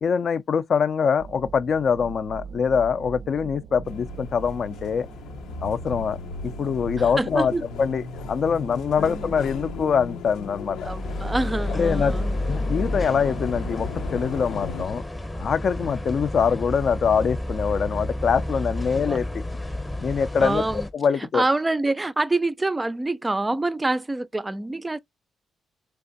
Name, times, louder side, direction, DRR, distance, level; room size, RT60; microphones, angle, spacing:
voice 1, 0.0-5.1 5.6-6.2 6.4-7.5 7.8-10.9 11.7-12.1 12.5-15.1 15.3-19.3 20.0-20.6 20.9-21.4, left 6 dB, 50° left, 0.5 m, -24 dB
sound 1, 1.2-14.1, right 6 dB, 75° right, 0.5 m, -42 dB
sound 2, 3.8-14.9, left 5 dB, 90° left, 0.8 m, -37 dB
voice 2, 7.2-7.6 9.0-9.3 10.8-12.5 19.1-19.2 20.4-20.9 21.2-25.0, right 2 dB, 15° right, 0.4 m, -26 dB
sound 3, 10.8-20.9, left 1 dB, 15° left, 0.8 m, -30 dB
3.4 x 3.3 x 3.9 m
cardioid pair, 105°, 0 cm